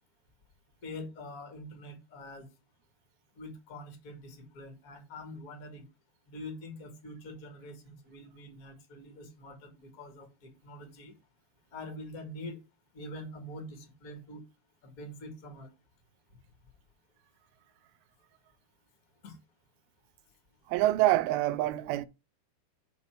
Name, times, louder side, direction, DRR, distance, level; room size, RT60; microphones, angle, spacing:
voice 1, 0.8-2.5 3.3-5.9 6.3-11.1 11.7-12.6 12.9-14.4 14.8-15.7 19.2-19.4, left 1 dB, 30° left, 1.7 m, -45 dB
voice 2, 20.7-22.1, right 15 dB, 80° right, 2.3 m, -26 dB
5.5 x 4.3 x 6.0 m
omnidirectional pair, 4.5 m